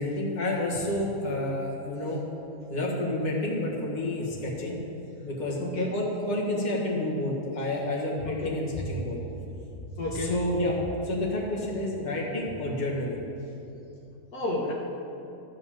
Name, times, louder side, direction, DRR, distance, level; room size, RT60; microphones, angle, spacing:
voice 1, 0.0-2.2 2.7-4.8 5.2-9.2 10.1-13.2, left 1 dB, 25° left, -4 dB, 1.7 m, -29 dB
voice 2, 5.6-6.0 8.3-8.7 10.0-10.4 14.3-14.7, left 2 dB, 65° left, -3 dB, 1.6 m, -31 dB
13.5 x 5.4 x 7.2 m, 2.8 s
omnidirectional pair, 1.8 m